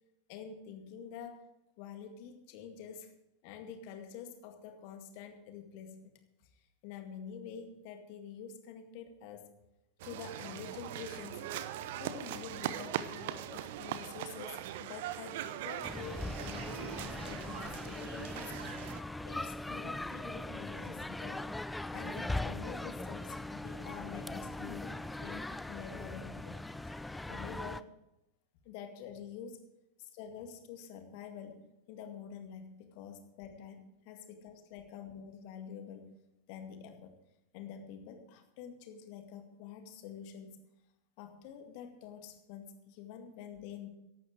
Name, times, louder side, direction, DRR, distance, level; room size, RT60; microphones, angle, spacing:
voice 1, 0.3-1.5 1.8-3.1 3.4-6.1 6.8-9.5 10.0-11.4 12.0-18.4 18.8-21.5 21.9-26.5 27.3-27.9 28.7-29.6 30.0-31.6 31.9-36.1 36.5-37.1 37.5-40.6 41.2-43.9, left 7 dB, 45° left, 6 dB, 2.0 m, -47 dB
crowd ext park light Verdun Montreal Canada, 10.0-19.0, right 11 dB, 50° right, 0.8 m, -41 dB
sound 1, 15.8-27.8, left 2 dB, 5° left, 0.5 m, -40 dB
15.5 x 11.5 x 4.7 m, 0.91 s
figure-of-eight pair, 90°, 0 cm